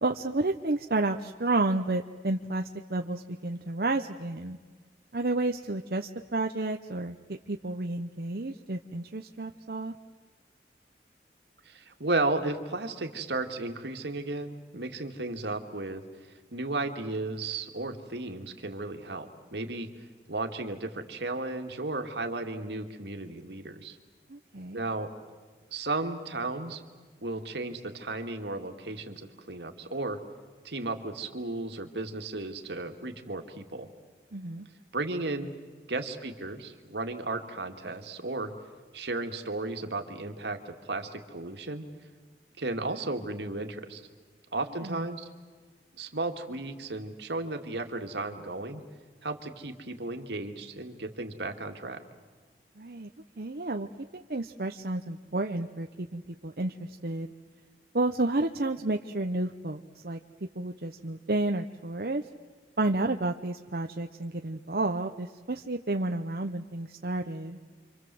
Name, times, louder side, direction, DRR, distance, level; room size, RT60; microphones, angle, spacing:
voice 1, 0.0-4.6 5.1-9.9 24.3-24.8 34.3-34.7 44.8-45.1 52.8-53.1 53.4-53.9 54.1-57.3 57.9-60.2 60.5-62.2 62.8-67.6, right 2 dB, 55° right, 4 dB, 0.9 m, -31 dB
voice 2, 11.7-16.0 16.5-19.9 20.3-24.0 24.7-25.1 25.7-26.8 27.2-30.2 30.6-33.9 34.9-35.5 35.9-38.5 38.9-41.9 42.6-44.0 44.5-45.3 46.0-48.8 49.2-52.0, right 2 dB, 80° right, 5 dB, 2.3 m, -34 dB
29.0 x 25.5 x 7.8 m, 1.5 s
head